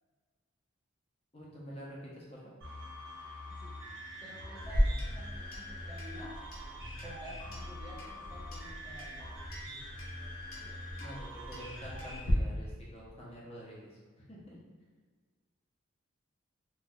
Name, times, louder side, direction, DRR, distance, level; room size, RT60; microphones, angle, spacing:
voice 1, 1.3-2.5 11.0-14.6, equal, 30° left, -5 dB, 0.7 m, -48 dB
sound 1, 2.6-12.2, left 1 dB, 60° right, 0.9 m, -44 dB
voice 2, 4.2-6.4 7.0-9.3, equal, 5° right, -9 dB, 0.4 m, -50 dB
Clock, 4.6-12.3, equal, 80° left, 0.8 m, -38 dB
4.2 x 2.4 x 2.3 m, 1.5 s
head